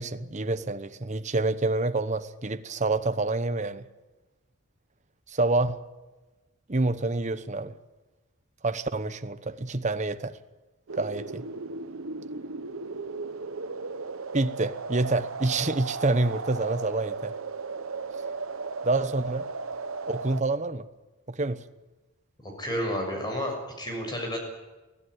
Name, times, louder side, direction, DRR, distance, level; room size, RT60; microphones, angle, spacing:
voice 1, 0.0-3.9 5.3-5.8 6.7-7.7 8.6-10.4 10.9-11.5 14.3-17.3 18.8-19.5 20.1-20.9 21.3-21.6, right 2 dB, 30° right, 1.0 m, -27 dB
sound 1, 10.9-20.4, right 4 dB, 65° right, 0.9 m, -36 dB
voice 2, 22.4-24.4, equal, 20° left, 6.5 m, -31 dB
23.5 x 16.0 x 9.6 m
head